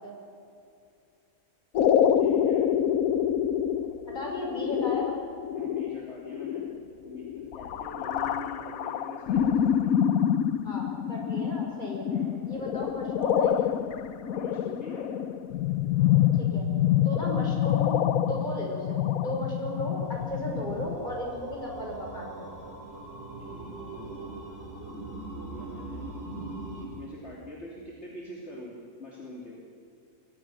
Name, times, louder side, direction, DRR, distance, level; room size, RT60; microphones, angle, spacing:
sound 1, 1.8-21.0, left 9 dB, 90° left, 1.2 m, -27 dB
voice 1, 2.1-2.7 5.5-6.7 7.0-10.0 12.1-12.4 14.3-15.1 23.5-24.2 24.9-26.1 26.8-29.6, left 2 dB, 55° left, -3 dB, 3.3 m, -44 dB
voice 2, 4.1-5.2 10.6-12.0 12.5-13.8 16.3-16.7 17.0-22.5, equal, 35° left, -1 dB, 6.0 m, -35 dB
sound 2, 20.0-26.9, right 2 dB, 45° right, 5.4 m, -41 dB
27.0 x 22.5 x 6.3 m, 2.6 s
omnidirectional pair, 1.4 m